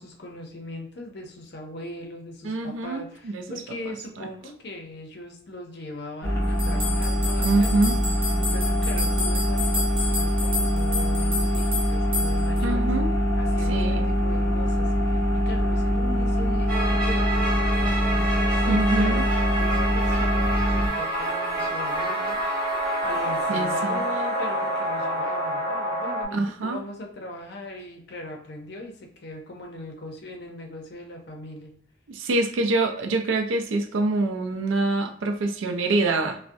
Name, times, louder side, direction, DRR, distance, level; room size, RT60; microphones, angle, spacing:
voice 1, 0.0-7.9 8.4-12.9 13.4-19.2 19.6-22.4 23.0-31.7, left 1 dB, 55° left, 3 dB, 0.6 m, -39 dB
voice 2, 2.4-3.4 4.2-4.3 7.4-8.0 12.6-13.1 13.7-14.2 18.7-19.2 23.5-24.0 26.3-26.8 32.1-36.4, right 2 dB, 80° right, 5 dB, 0.4 m, -25 dB
sound 1, 6.2-20.9, equal, 10° left, 0.7 m, -23 dB
sound 2, 6.6-12.6, left 2 dB, 30° right, 0.7 m, -31 dB
sound 3, 16.7-26.2, right 1 dB, 50° right, 1.0 m, -27 dB
2.4 x 2.1 x 2.5 m, 0.63 s
head